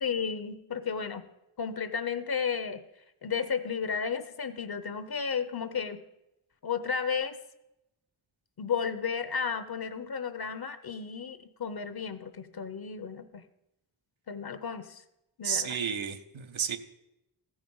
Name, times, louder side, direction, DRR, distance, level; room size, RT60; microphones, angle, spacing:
voice 1, 0.0-1.3 1.6-2.8 3.2-6.0 6.6-7.4 8.6-13.4 14.3-15.0 15.4-15.8, left 6 dB, 55° left, 11 dB, 0.8 m, -33 dB
voice 2, 15.4-16.8, right 7 dB, 75° right, 8 dB, 0.9 m, -31 dB
15.0 x 5.1 x 5.4 m, 0.91 s
cardioid pair, 60°, 47 cm